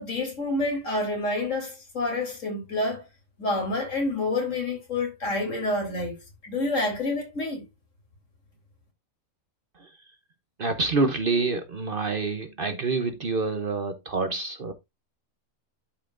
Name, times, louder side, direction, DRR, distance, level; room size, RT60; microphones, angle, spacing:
voice 1, 0.0-3.0 3.4-6.2 6.4-7.6, left 2 dB, 65° left, 3.6 m, -28 dB
voice 2, 10.6-14.7, right 3 dB, 45° right, 0.9 m, -27 dB
11.5 x 5.6 x 2.5 m
omnidirectional pair, 1.4 m